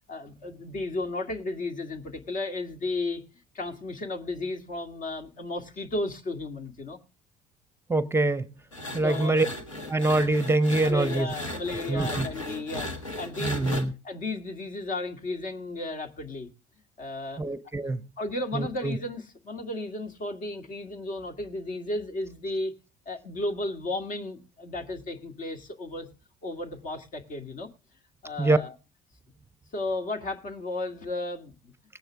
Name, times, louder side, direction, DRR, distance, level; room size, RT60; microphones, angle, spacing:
voice 1, 0.1-3.2 3.5-7.0 9.0-9.4 10.8-12.9 13.2-13.8 14.0-16.5 17.0-17.4 18.2-22.7 23.1-26.1 26.4-27.7 28.2-28.7 29.7-31.7, left 2 dB, 55° left, 2.1 m, -34 dB
voice 2, 7.9-8.5 8.9-9.5 9.9-11.3 11.9-12.3 13.4-13.9 17.4-18.0 18.5-19.0 28.4-28.6, right 2 dB, 15° right, 0.7 m, -24 dB
sound 1, 8.7-13.8, left 1 dB, 90° left, 1.5 m, -36 dB
18.5 x 9.0 x 3.5 m
hypercardioid pair, 55°, 16 cm